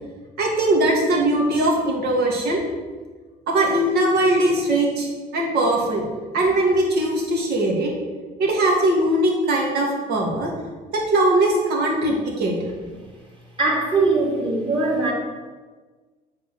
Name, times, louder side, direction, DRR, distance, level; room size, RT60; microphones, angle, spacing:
voice 1, 0.4-2.6 3.5-5.1 5.3-6.0 6.3-7.9 8.4-10.5 10.9-12.6, right 1 dB, 70° right, -2 dB, 2.3 m, -20 dB
voice 2, 13.6-15.1, right 3 dB, 30° right, -2 dB, 2.4 m, -21 dB
7.8 x 4.2 x 6.4 m, 1.4 s
cardioid pair, 110°, 17 cm